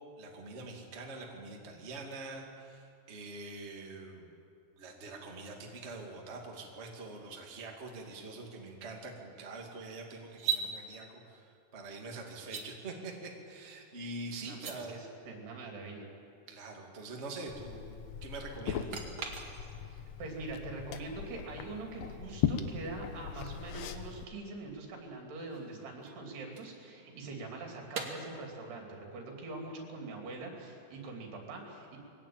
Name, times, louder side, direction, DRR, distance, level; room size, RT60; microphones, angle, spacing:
voice 1, 0.0-4.3 4.8-15.0 16.5-17.9 18.2-19.4, right 3 dB, 20° right, 1 dB, 1.9 m, -45 dB
sound 1, 10.3-10.7 12.4-12.7 14.5-14.8 18.9-19.9 23.1-23.2 25.2-27.3 27.9-28.1, right 7 dB, 40° right, 2.1 m, -39 dB
voice 2, 14.4-16.1 19.8-32.0, right 3 dB, 80° right, 1 dB, 5.3 m, -43 dB
Liquid, 17.5-24.2, left 8 dB, 80° left, 1.5 m, -38 dB
22.0 x 17.5 x 9.0 m, 2.5 s
omnidirectional pair, 4.6 m